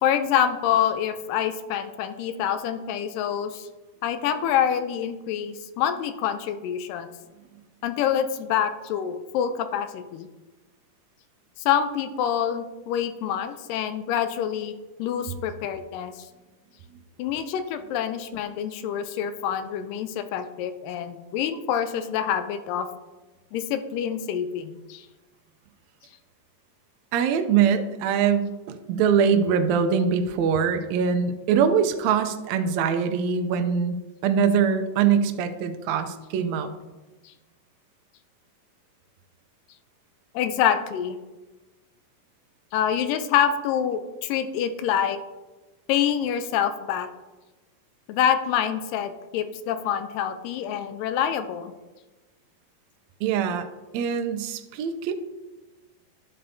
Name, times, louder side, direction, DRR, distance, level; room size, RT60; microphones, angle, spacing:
voice 1, 0.0-3.7 4.0-7.1 7.8-10.3 11.6-16.3 17.2-22.9 23.5-25.1 27.7-27.9 40.3-41.2 42.7-45.2 45.9-47.1 48.1-51.7, left 9 dB, 85° left, 9 dB, 2.2 m, -26 dB
voice 2, 27.1-36.7 53.2-53.7 53.9-55.1, right 7 dB, 90° right, 7 dB, 1.5 m, -23 dB
11.0 x 7.5 x 2.7 m, 1.2 s
omnidirectional pair, 3.9 m